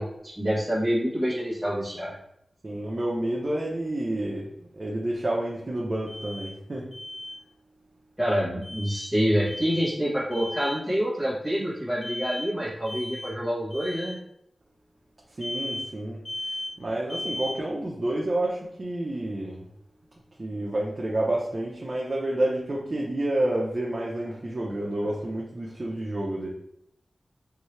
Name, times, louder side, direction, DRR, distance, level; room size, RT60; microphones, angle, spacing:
voice 1, 0.0-2.2 8.2-14.2, equal, 5° left, -9 dB, 1.3 m, -27 dB
voice 2, 2.6-6.9 15.3-16.2 16.8-19.6 20.4-26.5, right 1 dB, 40° right, -4 dB, 0.7 m, -29 dB
Alarm, 6.1-6.5 6.9-7.4 8.6-9.1 9.5-9.9 10.3-10.8 12.0-12.5 12.9-13.3 13.7-14.1 15.4-15.9 16.2-16.7 17.1-17.6, left 1 dB, 65° left, 1.5 m, -36 dB
4.6 x 2.7 x 3.2 m, 0.77 s
wide cardioid pair, 90°, 0 cm